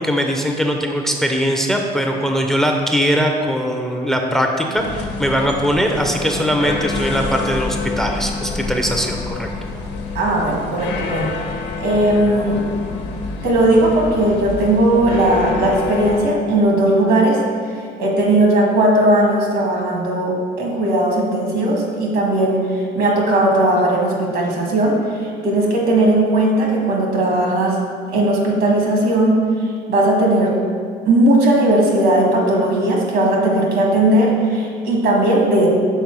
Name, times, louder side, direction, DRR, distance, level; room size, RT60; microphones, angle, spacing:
voice 1, 0.0-9.5, equal, 5° left, 2 dB, 0.6 m, -20 dB
sound 1, 4.8-16.2, left 3 dB, 80° left, 1.0 m, -27 dB
voice 2, 10.1-11.3 11.8-12.6 13.4-17.4 17.7-27.8 28.1-30.5 31.1-35.7, right 1 dB, 75° right, -1 dB, 1.7 m, -17 dB
5.5 x 4.3 x 6.1 m, 2.1 s
cardioid pair, 110°, 17 cm